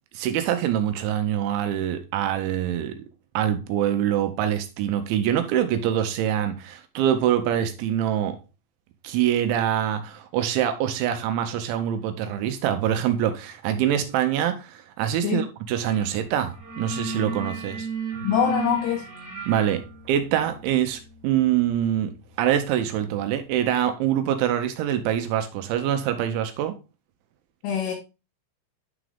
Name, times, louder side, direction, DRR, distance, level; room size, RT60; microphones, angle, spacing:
voice 1, 0.1-3.0 3.3-8.4 9.0-17.9 19.5-26.8, right 10 dB, 80° right, 2.9 m, -25 dB
sound 1, 15.8-16.1 16.4-23.0, right 3 dB, 55° right, 2.1 m, -35 dB
voice 2, 18.2-19.0 27.6-27.9, left 8 dB, 80° left, 2.5 m, -24 dB
10.0 x 3.7 x 3.3 m
omnidirectional pair, 5.7 m